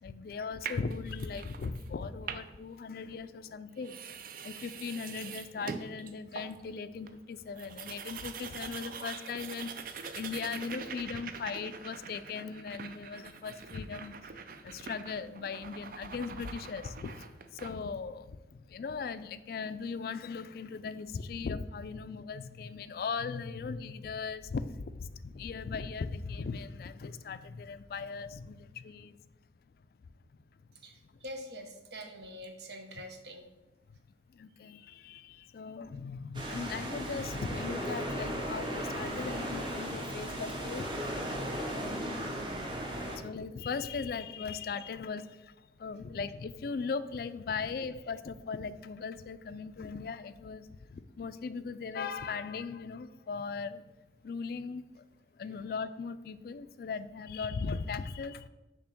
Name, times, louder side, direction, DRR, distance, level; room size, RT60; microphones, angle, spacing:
voice 1, 0.0-4.0 4.4-14.2 14.5-29.2 34.3-40.9 41.7-42.8 43.1-45.5 45.8-53.8 54.2-55.0 55.4-58.5, left 5 dB, 50° left, 13 dB, 0.3 m, -39 dB
sound 1, 0.6-1.9 2.2-2.7 3.4-3.5 3.8-6.7 7.1-7.2 7.4-17.7, right 6 dB, 50° right, 0.4 m, -44 dB
voice 2, 30.8-33.5, equal, 65° right, 4 dB, 0.9 m, -45 dB
sound 2, 36.3-43.2, equal, 25° right, 0.9 m, -36 dB
6.9 x 2.9 x 5.9 m, 1.1 s
head